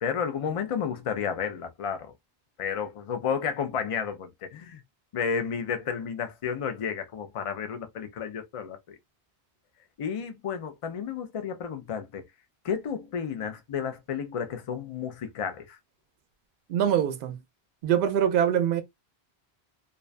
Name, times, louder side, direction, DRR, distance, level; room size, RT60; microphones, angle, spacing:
voice 1, 0.0-2.1 2.6-4.8 5.1-9.0 10.0-12.2 12.6-15.8, left 7 dB, 50° left, 0.4 m, -32 dB
voice 2, 16.7-17.4 17.8-18.8, right 9 dB, 60° right, 0.7 m, -24 dB
2.4 x 2.2 x 2.4 m
omnidirectional pair, 1.1 m